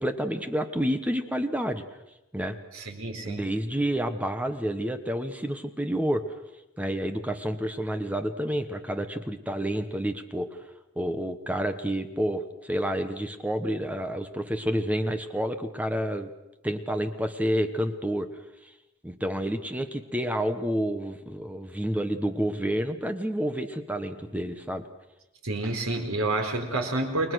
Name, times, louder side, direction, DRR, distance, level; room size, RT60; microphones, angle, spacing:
voice 1, 0.0-1.8 2.3-2.6 3.2-6.3 6.8-10.6 11.0-16.3 16.6-18.3 18.6-18.7 19.0-24.9, equal, 5° right, 8 dB, 1.2 m, -29 dB
voice 2, 2.7-3.5 25.4-27.3, right 2 dB, 80° right, 4 dB, 4.4 m, -29 dB
30.0 x 21.5 x 6.4 m, 0.93 s
head